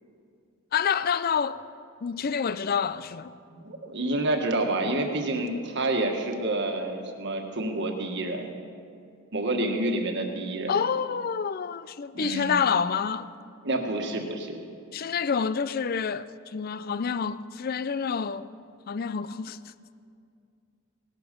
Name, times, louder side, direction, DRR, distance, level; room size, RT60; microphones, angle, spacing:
voice 1, 0.7-1.6 2.0-3.3 10.7-13.3 14.9-18.5 18.9-19.6, left 6 dB, 45° left, 0.4 m, -28 dB
voice 2, 3.5-8.5 9.3-10.7 12.1-12.6 13.6-14.6, right 2 dB, 55° right, 1.5 m, -28 dB
18.0 x 12.0 x 5.2 m
head